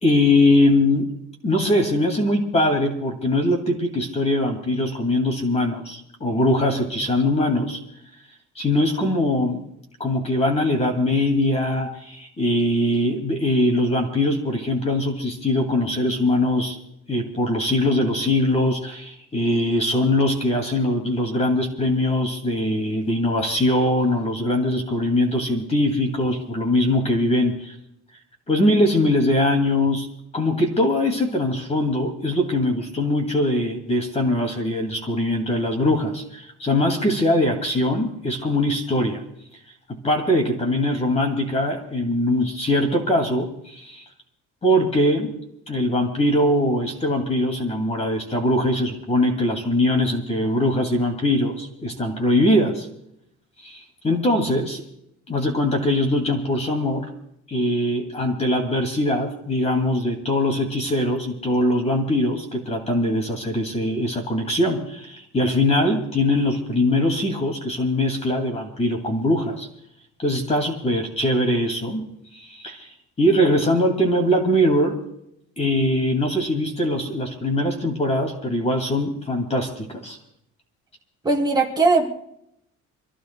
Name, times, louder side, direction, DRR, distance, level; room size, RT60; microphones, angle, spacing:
voice 1, 0.0-1.1 1.4-7.8 8.6-9.6 10.0-16.8 17.1-27.8 28.5-39.2 39.9-44.0 44.6-45.3 45.7-52.9 53.6-54.8 55.3-57.1 57.5-69.7 70.2-72.1 72.3-72.9 73.2-75.0 75.6-80.2, left 1 dB, 20° left, 3 dB, 2.2 m, -22 dB
voice 2, 81.2-82.1, right 3 dB, 15° right, -1 dB, 2.7 m, -19 dB
27.5 x 16.0 x 2.2 m, 0.75 s
cardioid pair, 180°, 30 cm